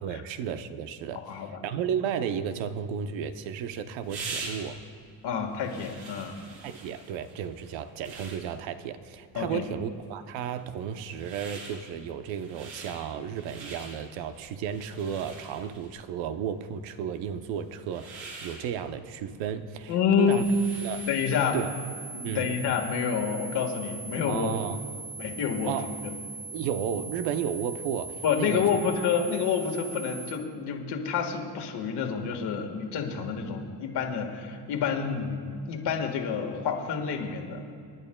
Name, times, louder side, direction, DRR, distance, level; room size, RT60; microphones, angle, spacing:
voice 1, 0.0-4.8 6.6-20.4 20.8-21.1 21.5-21.7 22.2-22.5 24.3-24.8 25.6-26.0 26.5-28.7, right 8 dB, 80° right, 9 dB, 0.8 m, -33 dB
voice 2, 1.3-1.6 5.2-6.4 9.4-9.6 19.9-20.5 21.1-21.6 22.1-24.6 25.2-25.8 26.0-26.1 28.2-35.4 35.7-37.6, left 7 dB, 60° left, 2 dB, 1.7 m, -28 dB
sound 1, 3.0-21.6, right 3 dB, 65° right, 2.8 m, -45 dB
sound 2, 20.3-30.3, right 4 dB, 20° right, 2.0 m, -40 dB
27.5 x 11.0 x 2.3 m, 2.4 s
cardioid pair, 145°, 45 cm